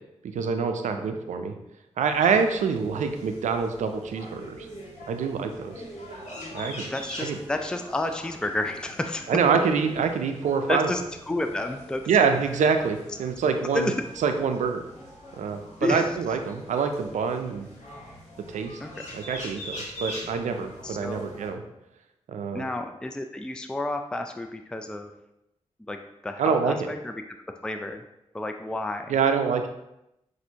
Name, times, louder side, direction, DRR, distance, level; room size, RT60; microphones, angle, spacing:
voice 1, 0.3-1.5 2.0-4.7 5.1-5.7 6.5-6.9 7.2-7.4 9.3-10.9 12.1-13.9 14.2-14.8 15.4-17.7 18.5-18.8 19.1-21.6 22.3-22.6 26.4-26.9 29.1-29.7, right 6 dB, 80° right, 6 dB, 0.4 m, -25 dB
sound 1, 2.1-21.5, equal, 70° left, 1.4 m, -43 dB
voice 2, 6.9-9.2 10.7-11.0 11.3-12.0 13.7-13.9 15.8-16.1 18.8-18.9 20.8-21.3 22.5-25.1 25.9-26.0 26.2-27.1 27.6-28.0 28.3-29.2, left 2 dB, 5° left, 6 dB, 0.4 m, -30 dB
5.9 x 2.6 x 2.8 m, 0.87 s
supercardioid pair, 40°, 12 cm